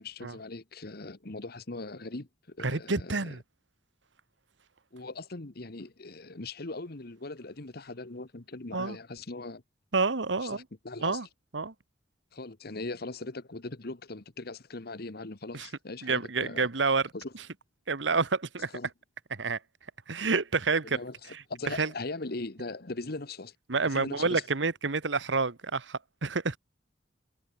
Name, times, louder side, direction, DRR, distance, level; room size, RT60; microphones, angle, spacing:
voice 1, 0.0-3.3 4.9-9.6 10.4-11.2 12.3-16.7 17.1-17.3 18.7-18.9 20.9-21.1 21.5-23.5 23.8-24.4, left 2 dB, 60° left, 1.4 m, -40 dB
voice 2, 2.6-3.4 8.7-9.0 9.9-10.6 11.0-11.3 11.5-11.7 15.5-15.7 16.0-17.4 17.9-18.7 19.3-19.6 20.1-21.0 21.3-21.9 23.7-26.6, right 4 dB, 85° right, 1.3 m, -29 dB
head